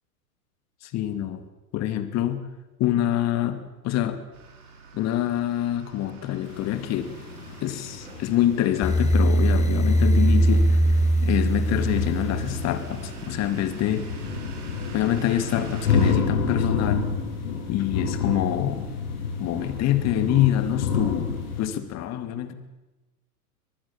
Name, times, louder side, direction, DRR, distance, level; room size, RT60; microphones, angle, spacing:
voice 1, 0.8-1.4 1.7-2.4 2.8-4.2 4.9-7.1 7.6-10.8 11.2-14.1 14.9-17.1 17.7-18.9 19.4-22.5, left 12 dB, 35° left, 11 dB, 2.5 m, -26 dB
sound 1, 4.3-16.1, right 4 dB, 75° right, 6.1 m, -44 dB
sound 2, 6.4-21.7, left 5 dB, 65° left, 7.9 m, -30 dB
sound 3, 8.8-12.9, right 1 dB, 15° left, 2.0 m, -21 dB
24.5 x 19.5 x 7.3 m, 1.1 s
hypercardioid pair, 110°, 45 cm